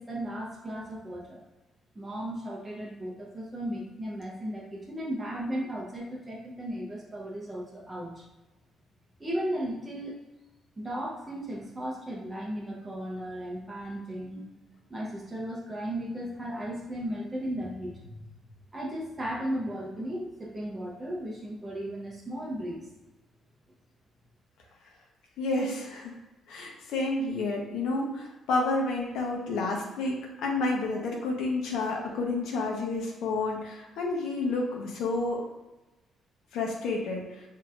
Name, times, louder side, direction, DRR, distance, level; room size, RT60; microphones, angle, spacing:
voice 1, 0.0-1.4 1.9-8.2 9.2-10.2 10.8-14.5 14.9-18.3 18.7-22.8, equal, 10° right, -3 dB, 0.7 m, -35 dB
voice 2, 25.4-26.2 26.5-35.4 36.5-37.4, left 3 dB, 85° left, -1 dB, 0.8 m, -30 dB
6.0 x 2.8 x 2.4 m, 1.1 s
cardioid pair, 175°, 0 cm